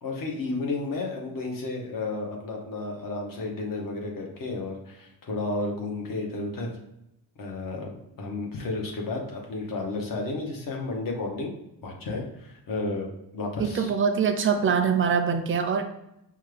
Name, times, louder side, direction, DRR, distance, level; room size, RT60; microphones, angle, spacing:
voice 1, 0.0-6.7 7.4-11.5 11.8-13.9, left 3 dB, 65° left, 0 dB, 1.0 m, -32 dB
voice 2, 13.6-15.8, right 6 dB, 35° right, 6 dB, 0.4 m, -23 dB
5.5 x 2.3 x 3.2 m, 0.82 s
wide cardioid pair, 170°, 37 cm